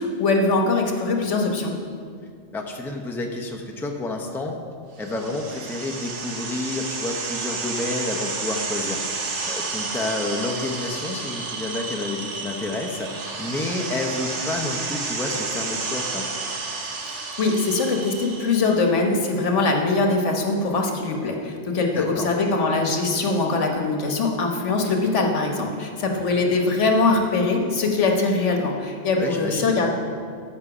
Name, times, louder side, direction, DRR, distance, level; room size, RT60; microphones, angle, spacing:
voice 1, 0.0-1.7 17.1-29.9, left 3 dB, 85° left, 2 dB, 1.4 m, -22 dB
voice 2, 2.5-4.6 5.0-16.3 21.9-22.3 29.1-29.8, left 2 dB, ahead, 1 dB, 0.6 m, -30 dB
sound 1, 5.0-18.8, right 4 dB, 75° right, 1.3 m, -31 dB
13.5 x 5.7 x 4.9 m, 2.2 s
omnidirectional pair, 1.2 m